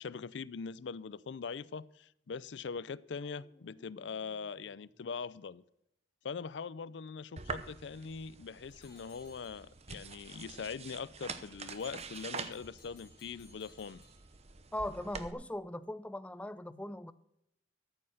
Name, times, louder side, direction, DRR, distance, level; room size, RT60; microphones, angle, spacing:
voice 1, 0.0-5.6 6.2-14.0 16.7-16.8, left 5 dB, 70° left, 0.4 m, -42 dB
sound 1, 3.1-5.6 8.7-9.8, left 1 dB, 25° left, 1.1 m, -65 dB
sound 2, 7.4-15.3, right 5 dB, 35° right, 0.8 m, -46 dB
sound 3, 8.7-10.0 11.7-14.7, left 4 dB, 50° left, 3.9 m, -62 dB
voice 2, 14.7-17.1, left 1 dB, 5° left, 0.5 m, -39 dB
13.5 x 7.8 x 6.4 m
head